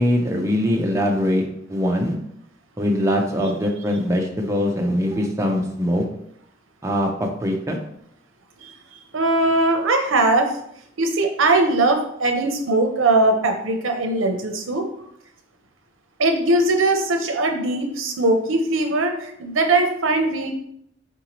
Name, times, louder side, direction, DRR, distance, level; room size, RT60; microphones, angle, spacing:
voice 1, 0.0-2.1 2.8-6.0 6.8-7.8, equal, 15° right, 1 dB, 0.5 m, -22 dB
voice 2, 9.1-10.6 11.0-14.9 16.2-20.5, right 2 dB, 75° right, 4 dB, 0.6 m, -20 dB
4.7 x 2.7 x 2.9 m, 0.73 s
head